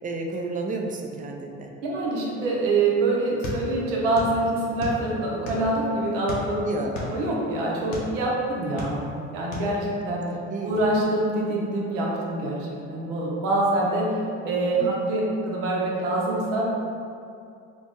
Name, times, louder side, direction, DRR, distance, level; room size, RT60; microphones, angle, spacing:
voice 1, 0.0-1.7 6.6-7.1 10.3-10.8 14.8-14.9, right 3 dB, 25° right, 2 dB, 0.4 m, -32 dB
voice 2, 1.8-6.6 7.0-9.1 9.3-10.2 10.6-14.1 14.4-16.7, right 2 dB, 85° right, -3 dB, 0.7 m, -25 dB
sound 1, 3.4-4.4 4.6-5.8 6.2-8.1 8.6-9.2 9.5-9.7, left 1 dB, 70° left, 0.8 m, -34 dB
2.9 x 2.0 x 3.5 m, 2.4 s
hypercardioid pair, 65°, 35 cm